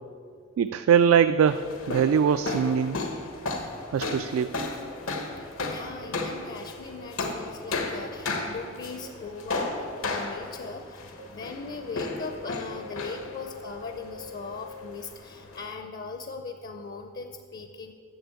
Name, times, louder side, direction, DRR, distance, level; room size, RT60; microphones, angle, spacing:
voice 1, 0.6-3.0 3.9-4.5, right 7 dB, 90° right, 12 dB, 0.3 m, -22 dB
sound 1, 1.5-15.7, left 2 dB, 85° left, 1.2 m, -34 dB
voice 2, 5.4-17.9, left 4 dB, 45° left, 6 dB, 0.5 m, -39 dB
sound 2, 6.0-6.1 7.0-7.1 8.0-8.1 9.0-9.1 10.0-10.1 10.6-10.7 11.2-11.3 11.7-14.8, left 3 dB, 70° right, 0.9 m, -44 dB
7.8 x 6.7 x 8.3 m, 2.2 s
head